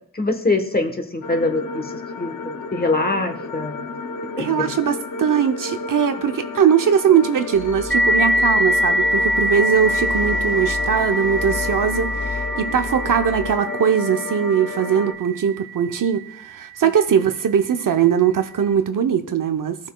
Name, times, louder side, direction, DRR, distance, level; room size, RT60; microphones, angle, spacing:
voice 1, 0.1-3.9 4.3-4.7, left 2 dB, 25° left, 5 dB, 1.1 m, -23 dB
sound 1, 1.2-15.1, left 3 dB, 60° left, 0.7 m, -32 dB
voice 2, 4.4-19.8, right 8 dB, 60° right, 7 dB, 0.7 m, -20 dB
sound 2, 7.5-13.6, left 5 dB, 85° left, 1.3 m, -33 dB
sound 3, 7.9-17.1, equal, ahead, 0.5 m, -24 dB
15.5 x 6.3 x 2.3 m, 0.65 s
wide cardioid pair, 120°, 36 cm